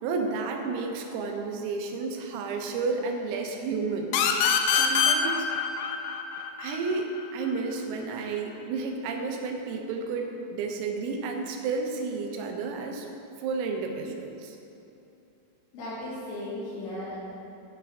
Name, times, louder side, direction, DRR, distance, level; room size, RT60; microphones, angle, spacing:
voice 1, 0.0-4.1 4.7-5.5 6.6-13.1 13.4-14.6, right 4 dB, 85° right, 2 dB, 3.6 m, -31 dB
sound 1, 4.1-7.5, left 7 dB, 85° left, 3.3 m, -25 dB
voice 2, 15.7-17.2, left 1 dB, 70° left, -10 dB, 4.5 m, -36 dB
11.5 x 6.7 x 4.9 m, 2.7 s
omnidirectional pair, 6.0 m